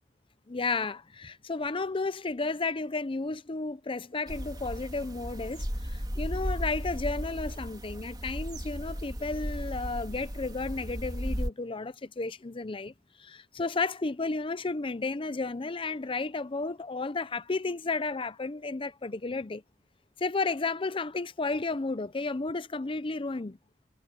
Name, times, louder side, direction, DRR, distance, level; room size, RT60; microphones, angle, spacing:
voice 1, 0.5-12.9 13.2-19.6 20.2-23.6, left 3 dB, 30° left, 0.6 m, -33 dB
sound 1, 4.3-11.5, equal, 25° right, 3.5 m, -35 dB
head